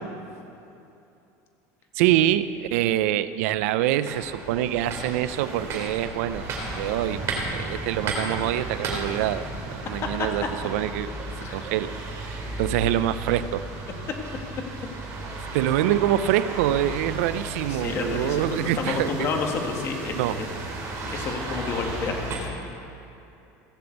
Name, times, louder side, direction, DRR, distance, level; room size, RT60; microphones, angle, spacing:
voice 1, 1.9-6.5 6.7-7.2 7.5-11.1 11.5-11.9 12.2-13.7 15.5-19.3 20.1-20.4, right 12 dB, 85° right, 14 dB, 0.5 m, -25 dB
sound 1, 4.1-22.4, right 2 dB, 40° right, 2.9 m, -34 dB
voice 2, 17.7-20.5 21.0-22.5, left 4 dB, 35° left, 2 dB, 1.8 m, -30 dB
16.0 x 7.1 x 8.0 m, 2.8 s
cardioid pair, 150°, 7 cm